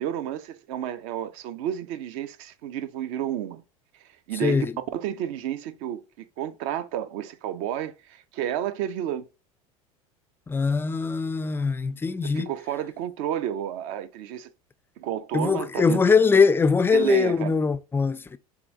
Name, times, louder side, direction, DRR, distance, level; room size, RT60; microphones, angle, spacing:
voice 1, 0.0-3.6 4.3-4.7 4.9-9.3 12.2-14.5 15.0-16.0 16.9-17.6, right 11 dB, 55° right, 0.6 m, -31 dB
voice 2, 4.4-4.7 10.5-12.5 15.3-18.4, left 5 dB, 10° left, 0.4 m, -22 dB
6.8 x 2.4 x 2.6 m
figure-of-eight pair, 75°, 19 cm